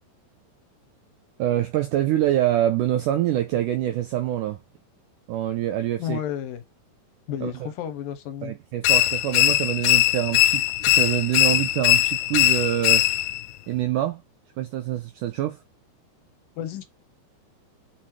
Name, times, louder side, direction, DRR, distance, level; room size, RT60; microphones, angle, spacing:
voice 1, 1.4-4.6 5.3-6.2 7.4-7.5 8.4-13.0 13.7-14.2 14.6-15.6, right 13 dB, 85° right, 1.8 m, -25 dB
voice 2, 6.0-6.6 7.3-8.5 16.6-16.8, left 10 dB, 70° left, 2.4 m, -31 dB
sound 1, 8.8-13.5, left 15 dB, 85° left, 2.6 m, -20 dB
6.2 x 6.1 x 4.6 m
omnidirectional pair, 4.6 m